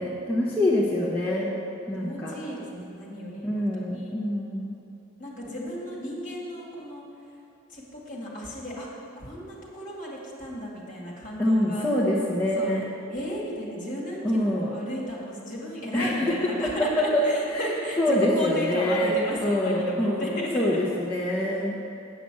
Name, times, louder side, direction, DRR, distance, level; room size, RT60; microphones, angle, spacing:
voice 1, 0.0-1.5 1.9-2.3 3.4-4.7 11.4-12.8 14.2-14.7 15.9-16.4 16.6-17.2 17.5-17.7 18.0-19.1 19.4-21.7, left 1 dB, 10° left, -8 dB, 0.9 m, -25 dB
voice 2, 2.0-4.1 5.2-7.0 7.7-8.9 9.2-11.9 12.6-12.7 13.1-20.9, equal, 40° left, -4 dB, 2.1 m, -34 dB
8.6 x 5.8 x 7.5 m, 2.8 s
head